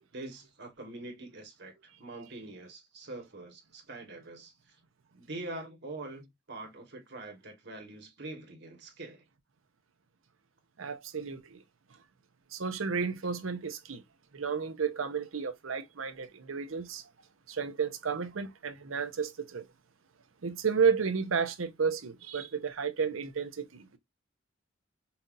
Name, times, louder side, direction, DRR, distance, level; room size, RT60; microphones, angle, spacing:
voice 1, 0.1-4.7 5.1-9.2, right 2 dB, 60° right, 1.4 m, -44 dB
voice 2, 10.8-11.6 12.5-14.0 14.3-17.1 17.5-19.7 20.4-24.0, right 6 dB, 90° right, 0.7 m, -32 dB
5.6 x 2.7 x 2.5 m
head